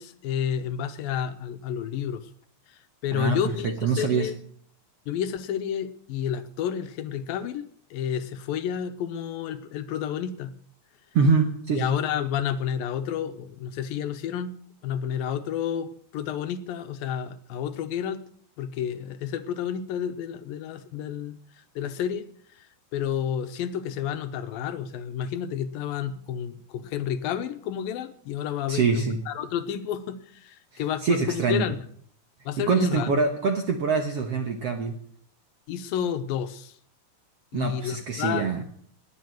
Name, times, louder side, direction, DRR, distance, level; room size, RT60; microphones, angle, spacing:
voice 1, 0.0-2.3 2.7-4.4 5.1-7.6 7.9-10.6 11.8-14.5 14.8-18.2 18.6-21.4 21.8-22.3 22.5-31.8 32.5-33.2 35.7-36.8 37.5-38.5, left 9 dB, 75° left, 9 dB, 2.6 m, -30 dB
voice 2, 3.6-4.3 11.1-11.9 28.7-29.2 31.0-31.7 32.7-34.9 37.5-38.6, right 5 dB, 65° right, 5 dB, 1.6 m, -24 dB
20.0 x 7.7 x 7.7 m, 0.62 s
omnidirectional pair, 4.3 m